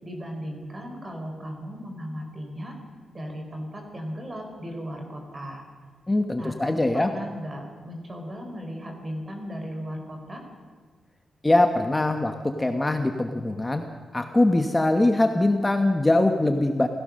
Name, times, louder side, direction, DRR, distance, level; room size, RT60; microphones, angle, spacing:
voice 1, 0.0-2.7 3.1-5.6 6.3-10.4, equal, 30° right, 3 dB, 4.6 m, -36 dB
voice 2, 6.1-7.1 11.4-16.9, left 2 dB, 15° left, 5 dB, 1.1 m, -22 dB
28.0 x 16.5 x 6.5 m, 1.5 s
wide cardioid pair, 140°, 0 cm